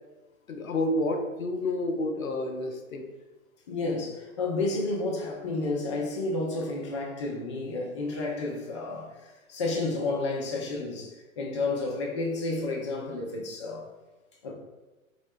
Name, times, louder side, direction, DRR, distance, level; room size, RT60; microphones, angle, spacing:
voice 1, 0.5-3.1, left 1 dB, 70° left, 4 dB, 0.7 m, -29 dB
voice 2, 3.7-13.9 14.4-14.5, left 2 dB, 25° left, 0 dB, 0.4 m, -31 dB
3.6 x 3.5 x 2.2 m, 1.1 s
figure-of-eight pair, 120°, 42 cm